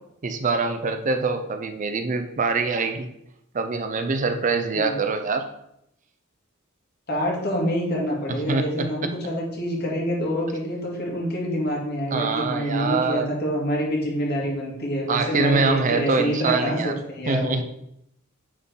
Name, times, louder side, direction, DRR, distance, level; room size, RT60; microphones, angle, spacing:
voice 1, 0.2-3.1 3.5-5.5 8.3-9.1 12.1-13.3 15.1-16.9 17.3-17.6, right 4 dB, 40° right, 7 dB, 0.5 m, -24 dB
voice 2, 7.1-17.6, equal, 50° left, -3 dB, 2.1 m, -26 dB
9.4 x 3.8 x 4.0 m, 0.77 s
head